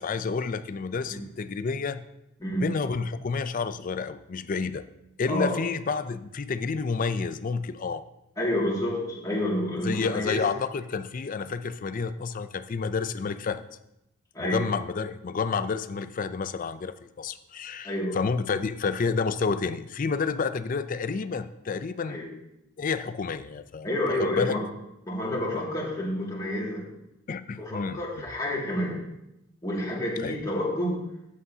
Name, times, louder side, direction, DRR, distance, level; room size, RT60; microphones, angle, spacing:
voice 1, 0.0-2.0 2.6-4.8 5.2-8.0 9.8-13.6 14.4-22.2 22.8-23.9 24.2-24.6 25.5-25.6 27.3-28.0 30.2-30.3, left 5 dB, 40° left, 12 dB, 0.4 m, -30 dB
voice 2, 5.3-5.6 8.4-10.4 14.3-14.6 17.8-18.2 22.1-22.3 23.8-24.6 25.1-26.9 27.6-29.0 29.6-31.0, left 1 dB, 15° left, -4 dB, 2.2 m, -29 dB
13.0 x 8.2 x 2.8 m, 0.87 s
head